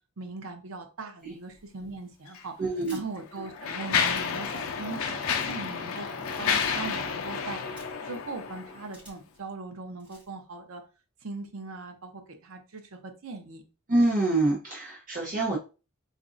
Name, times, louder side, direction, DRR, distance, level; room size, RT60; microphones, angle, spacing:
voice 1, 0.2-2.5 2.9-6.1 6.4-10.8 11.2-13.6, right 3 dB, 80° right, 6 dB, 0.7 m, -40 dB
Mechanisms, 2.3-2.4 3.1-8.9, left 6 dB, 80° left, 0.5 m, -30 dB
voice 2, 2.6-3.0 13.9-15.6, right 2 dB, 40° right, -2 dB, 0.7 m, -26 dB
sound 1, 2.7-3.2 4.0-4.2 5.1-5.5 6.5-6.7 7.8-8.1 8.9-9.3 10.0-10.3, right 1 dB, 5° right, 1.9 m, -49 dB
4.0 x 2.5 x 2.5 m, 0.32 s
head